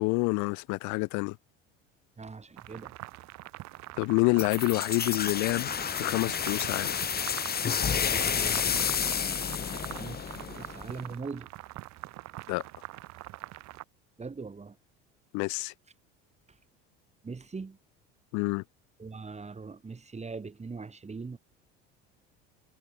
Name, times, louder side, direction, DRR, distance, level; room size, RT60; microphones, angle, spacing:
voice 1, 0.0-1.4 4.0-7.0 12.5-12.6 15.3-15.7 18.3-18.6, left 27 dB, 70° left, 1.0 m, -28 dB
voice 2, 2.2-2.9 10.0-11.5 14.2-14.8 17.2-17.8 19.0-21.4, right 4 dB, 20° right, 7.4 m, -41 dB
sound 1, 2.6-13.8, right 18 dB, 60° right, 1.7 m, -44 dB
sound 2, 4.4-11.0, left 7 dB, 30° left, 2.0 m, -30 dB
supercardioid pair, 90°, 31 cm